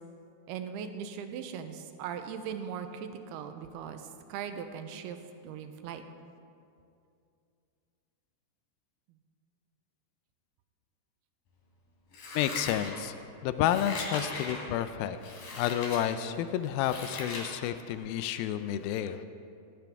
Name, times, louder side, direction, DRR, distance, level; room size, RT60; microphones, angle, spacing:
voice 1, 0.5-5.2 5.4-6.0, right 7 dB, 80° right, 7 dB, 2.6 m, -39 dB
Scissors, 12.1-13.2 13.6-14.6 15.2-16.0 16.5-17.5 17.9-18.0, left 3 dB, 60° left, 4.3 m, -39 dB
voice 2, 12.4-13.1 13.4-15.2 15.5-19.3, left 10 dB, 85° left, 11 dB, 2.1 m, -30 dB
17.5 x 17.0 x 3.5 m, 2.5 s
omnidirectional pair, 4.8 m